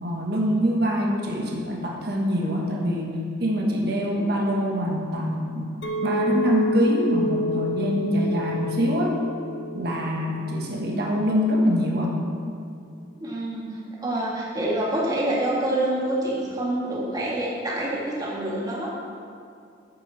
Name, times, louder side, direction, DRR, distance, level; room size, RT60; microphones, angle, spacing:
voice 1, 0.0-5.7 6.0-9.2 9.7-12.2, equal, 55° right, -1 dB, 1.4 m, -24 dB
Chink clink, 5.8-10.2 10.5-10.9, left 1 dB, 80° left, 1.0 m, -29 dB
voice 2, 13.2-18.9, right 1 dB, 20° right, -5 dB, 2.0 m, -27 dB
10.5 x 9.1 x 4.1 m, 2.4 s
head